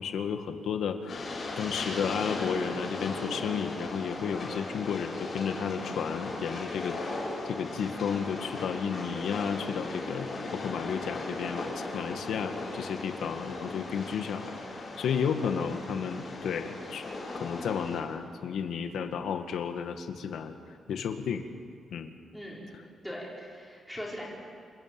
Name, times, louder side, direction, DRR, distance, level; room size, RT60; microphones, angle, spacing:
voice 1, 0.0-7.0 7.5-17.1 17.3-20.5 20.9-21.4 21.9-22.1, left 7 dB, 75° left, 7 dB, 1.6 m, -33 dB
Train, 1.1-18.0, left 2 dB, 35° left, 6.8 m, -37 dB
voice 2, 22.3-22.7 23.0-24.2, equal, ahead, -4 dB, 4.8 m, -40 dB
28.0 x 13.0 x 9.3 m, 2.3 s
wide cardioid pair, 155°, 0 cm